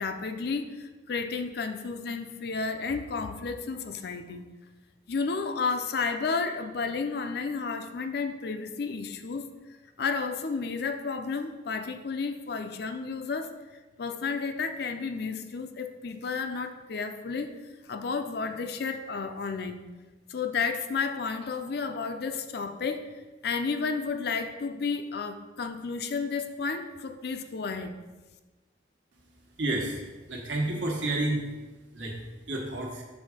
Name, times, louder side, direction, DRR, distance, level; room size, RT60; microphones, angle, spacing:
voice 1, 0.0-4.5 5.1-9.5 10.0-13.5 14.0-17.5 17.8-19.8 20.3-23.1 23.4-27.9, left 4 dB, 55° left, 7 dB, 0.5 m, -32 dB
voice 2, 29.6-30.0 30.3-31.4 31.9-32.2 32.5-33.0, right 2 dB, 75° right, 0 dB, 1.2 m, -30 dB
6.3 x 3.6 x 4.9 m, 1.2 s
head